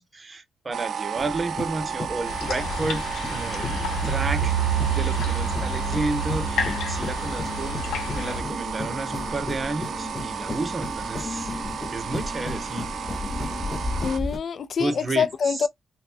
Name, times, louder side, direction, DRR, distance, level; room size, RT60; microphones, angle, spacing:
voice 1, 0.0-11.5 11.9-12.9 14.8-15.7, right 3 dB, 35° right, 0.7 m, -32 dB
sound 1, 0.7-14.2, right 8 dB, 60° right, 0.4 m, -33 dB
sound 2, 1.2-14.4, left 3 dB, 25° left, 0.8 m, -34 dB
sound 3, 2.3-8.4, right 3 dB, 85° left, 0.8 m, -28 dB
voice 2, 14.0-15.7, left 6 dB, 55° left, 0.4 m, -25 dB
4.0 x 2.1 x 2.6 m
cardioid pair, 105°, 0 cm